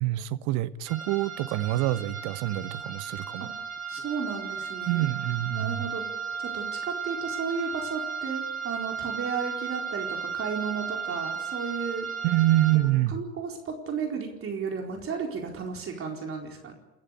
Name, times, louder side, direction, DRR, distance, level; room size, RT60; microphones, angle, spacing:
voice 1, 0.0-3.5 4.9-5.9 12.2-13.2, right 15 dB, 50° right, 15 dB, 1.2 m, -26 dB
sound 1, 0.9-12.7, right 6 dB, 80° right, 4.6 m, -35 dB
voice 2, 3.9-5.1 5.5-6.0 6.4-12.1 12.7-16.7, right 5 dB, 30° right, 1 dB, 4.4 m, -34 dB
29.0 x 14.0 x 8.3 m, 0.99 s
figure-of-eight pair, 75°, 40 cm